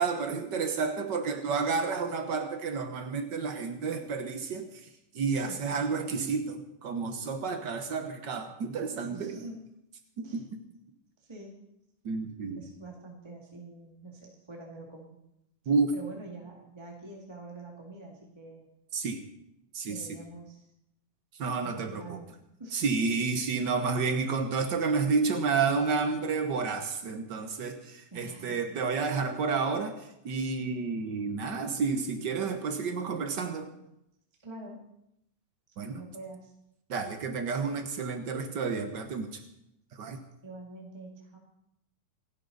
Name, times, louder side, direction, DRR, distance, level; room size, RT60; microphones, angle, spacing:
voice 1, 0.0-4.9 5.1-9.4 10.2-10.5 12.0-12.6 15.7-15.9 18.9-19.2 19.7-20.0 21.4-22.2 22.7-33.7 35.8-36.0 36.9-39.4 39.9-40.2, right 4 dB, 70° right, 7 dB, 1.0 m, -30 dB
voice 2, 5.3-5.6 9.1-9.6 10.2-10.4 11.2-11.6 12.6-15.2 15.9-18.7 19.8-20.7 21.6-23.2 28.1-28.6 34.4-34.8 35.9-36.5 40.4-41.4, right 2 dB, 10° right, -1 dB, 1.6 m, -45 dB
28.0 x 10.5 x 4.0 m, 0.82 s
omnidirectional pair, 3.6 m